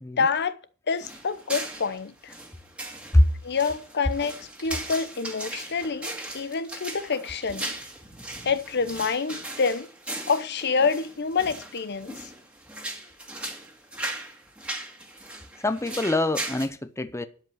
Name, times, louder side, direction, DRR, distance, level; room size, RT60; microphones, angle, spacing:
voice 1, 0.2-0.6 0.9-2.3 3.4-7.8 8.4-9.9 10.3-12.2, left 5 dB, 50° left, 0.8 m, -27 dB
sound 1, 1.0-16.7, right 1 dB, 5° right, 2.2 m, -38 dB
voice 2, 15.6-17.3, left 1 dB, 15° left, 0.7 m, -23 dB
12.5 x 5.5 x 8.9 m
head